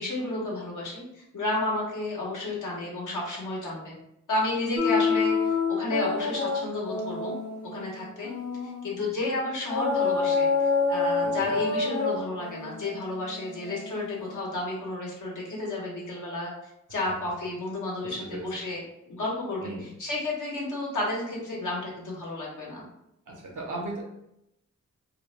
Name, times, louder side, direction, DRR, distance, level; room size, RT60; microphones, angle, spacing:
voice 1, 0.0-4.0 4.3-7.3 7.7-8.3 8.8-16.5 16.9-18.8 19.1-22.9, left 2 dB, 85° left, -3 dB, 0.8 m, -32 dB
sound 1, 4.8-8.9 9.7-14.4, left 4 dB, 55° left, 0.5 m, -28 dB
voice 2, 11.2-11.6 17.1-17.2 18.0-18.5 19.6-19.9 23.3-24.0, right 2 dB, 85° right, -1 dB, 0.7 m, -37 dB
2.2 x 2.0 x 3.1 m, 0.82 s
cardioid pair, 60°, 30 cm